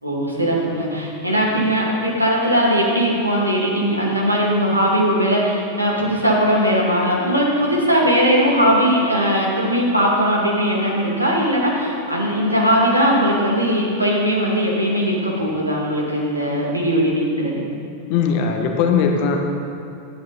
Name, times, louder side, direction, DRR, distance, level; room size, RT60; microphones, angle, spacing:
voice 1, 0.0-17.7, equal, 85° right, -4 dB, 2.3 m, -19 dB
voice 2, 18.1-19.4, left 6 dB, 45° left, 3 dB, 1.4 m, -19 dB
14.5 x 11.0 x 4.1 m, 2.7 s
figure-of-eight pair, 90°, 0 cm